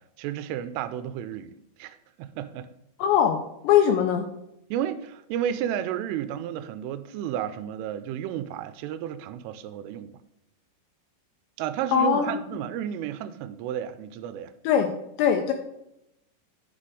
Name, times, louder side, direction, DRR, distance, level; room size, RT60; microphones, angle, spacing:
voice 1, 0.2-1.5 1.8-2.7 4.7-10.1 11.6-14.5, right 10 dB, 90° right, 12 dB, 3.1 m, -32 dB
voice 2, 3.0-4.3 11.9-12.3 14.6-14.9 15.2-15.5, left 9 dB, 85° left, 5 dB, 2.6 m, -21 dB
11.0 x 4.3 x 4.8 m, 0.82 s
omnidirectional pair, 5.6 m